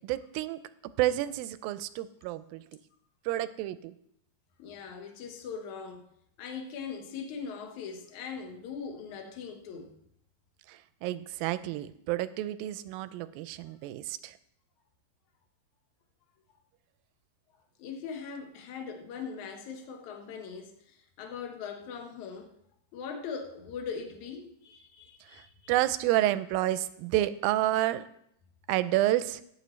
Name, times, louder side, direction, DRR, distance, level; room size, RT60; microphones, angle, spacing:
voice 1, 0.0-0.6 1.0-2.6 3.3-3.9 10.7-14.3 25.7-28.1 28.7-29.4, right 14 dB, 85° right, 2.4 m, -29 dB
voice 2, 4.6-6.1 6.4-10.0 13.7-13.8 17.8-22.5 22.9-25.8, left 6 dB, 65° left, 2.4 m, -41 dB
17.0 x 9.6 x 3.2 m
omnidirectional pair, 4.1 m